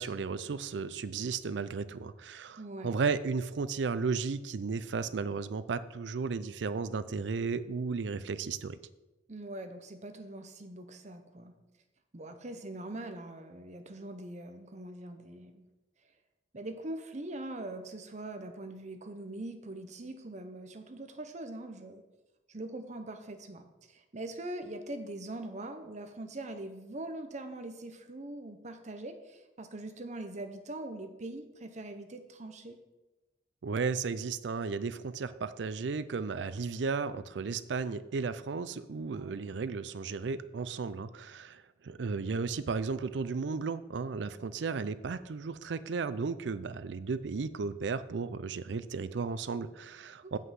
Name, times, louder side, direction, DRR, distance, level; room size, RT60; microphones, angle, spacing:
voice 1, 0.0-8.8 33.6-50.4, right 4 dB, 85° right, 14 dB, 0.5 m, -34 dB
voice 2, 2.6-2.9 9.3-11.5 12.1-15.6 16.5-22.0 22.5-32.8 39.1-39.4 50.2-50.4, right 2 dB, 40° right, 7 dB, 0.9 m, -42 dB
7.8 x 5.6 x 6.3 m, 1.1 s
head